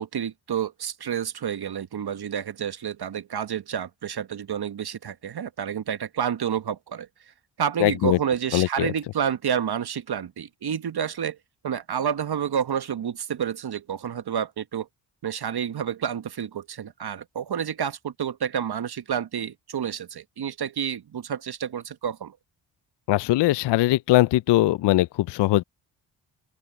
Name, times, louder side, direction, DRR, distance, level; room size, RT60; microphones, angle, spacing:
voice 1, 0.0-7.1 7.6-11.4 11.6-14.9 15.2-22.4, right 8 dB, 50° right, 1.4 m, -29 dB
voice 2, 7.8-8.2 8.5-8.9 23.1-25.6, left 16 dB, 60° left, 0.6 m, -21 dB
open air
hypercardioid pair, 45°, 49 cm